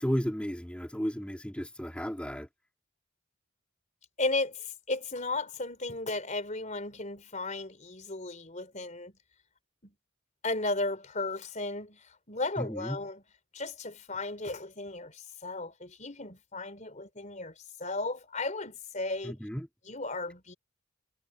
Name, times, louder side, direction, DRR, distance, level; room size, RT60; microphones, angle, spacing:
voice 1, 0.0-2.5 12.6-13.0 19.2-19.7, equal, 5° left, 3.2 m, -33 dB
voice 2, 4.2-9.1 9.8-9.9 10.4-13.2 13.5-17.5 17.8-19.3 19.9-20.5, left 2 dB, 35° left, 4.2 m, -35 dB
head